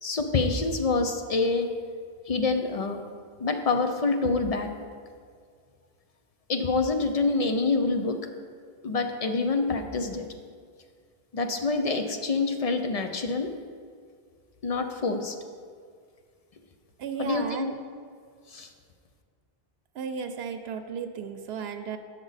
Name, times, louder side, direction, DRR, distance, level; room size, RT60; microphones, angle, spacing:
voice 1, 0.0-1.7 2.3-3.0 3.4-4.7 6.5-8.3 8.8-10.3 11.3-13.5 14.6-15.4 17.2-17.7 18.5-18.7, left 3 dB, 50° left, 6 dB, 0.5 m, -26 dB
voice 2, 17.0-17.8 19.9-22.0, right 6 dB, 85° right, 7 dB, 0.8 m, -34 dB
8.2 x 6.2 x 4.0 m, 2.1 s
omnidirectional pair, 1.0 m